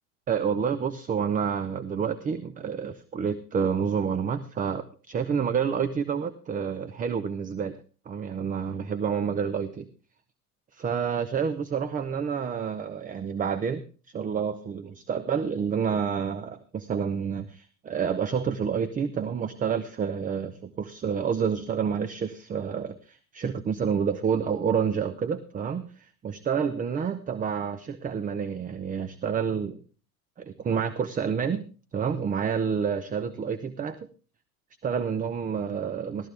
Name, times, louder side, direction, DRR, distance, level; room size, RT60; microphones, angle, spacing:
voice 1, 0.3-7.8 8.1-9.9 10.7-29.8 30.4-31.6 31.9-34.0 34.8-36.3, right 7 dB, 20° right, 12 dB, 0.7 m, -29 dB
14.0 x 14.0 x 3.4 m, 0.37 s
figure-of-eight pair, 75°, 44 cm